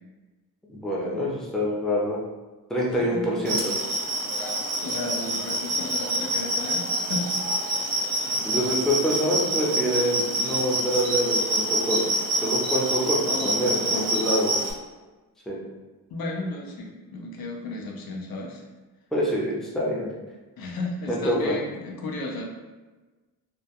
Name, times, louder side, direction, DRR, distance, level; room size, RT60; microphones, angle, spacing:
voice 1, 0.7-2.2 2.7-3.7 8.4-12.0 12.4-14.6 15.5-15.6 19.1-20.1 21.1-21.5, equal, ahead, -5 dB, 0.4 m, -26 dB
voice 2, 3.1-3.4 4.8-7.3 13.2-14.1 16.1-18.6 20.6-22.4, left 2 dB, 75° left, 0 dB, 0.5 m, -34 dB
sound 1, 3.4-14.7, right 1 dB, 65° right, 0.5 m, -26 dB
2.2 x 2.2 x 2.7 m, 1.2 s
wide cardioid pair, 110°, 36 cm